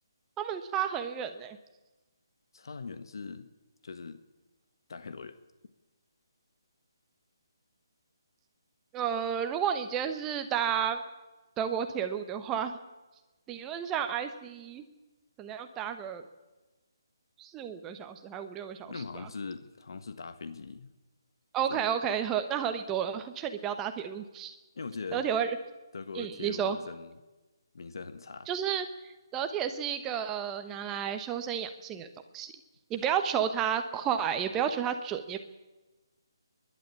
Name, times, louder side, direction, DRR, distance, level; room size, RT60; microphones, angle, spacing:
voice 1, 0.4-1.6 8.9-11.0 11.6-12.8 13.5-14.8 15.4-16.2 17.4-18.9 21.5-24.6 25.1-25.6 26.1-26.8 28.5-32.5 32.9-35.4, right 8 dB, 10° right, 7 dB, 1.1 m, -32 dB
voice 2, 2.5-3.5 3.8-4.2 4.9-5.4 18.9-20.9 21.7-21.9 24.7-25.3 25.9-27.2 27.7-28.5, left 4 dB, 65° left, 10 dB, 1.4 m, -41 dB
28.5 x 11.5 x 8.3 m, 1.1 s
hypercardioid pair, 170°, 2 cm